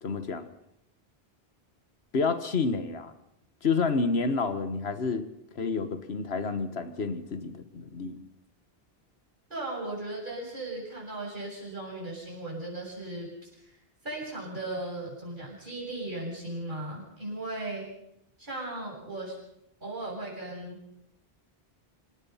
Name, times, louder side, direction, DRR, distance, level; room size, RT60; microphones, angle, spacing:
voice 1, 0.0-0.5 2.1-3.1 3.6-5.2 5.5-8.2, left 4 dB, 90° left, 11 dB, 1.6 m, -29 dB
voice 2, 9.5-13.7 14.0-17.9 18.4-19.4 19.8-20.8, right 2 dB, 50° right, -4 dB, 7.4 m, -37 dB
27.0 x 17.0 x 5.7 m, 0.78 s
omnidirectional pair, 1.0 m